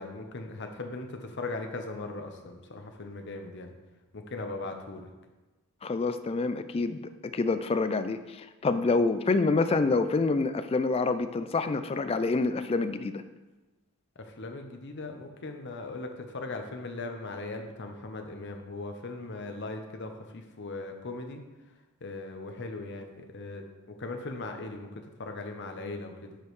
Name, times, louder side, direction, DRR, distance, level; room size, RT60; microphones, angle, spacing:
voice 1, 0.0-3.7 4.1-5.1 14.2-21.4 22.0-23.6 24.0-26.4, left 2 dB, 50° left, 5 dB, 0.8 m, -39 dB
voice 2, 5.8-13.2, left 3 dB, 25° left, 10 dB, 0.3 m, -27 dB
10.0 x 5.2 x 3.2 m, 1.2 s
head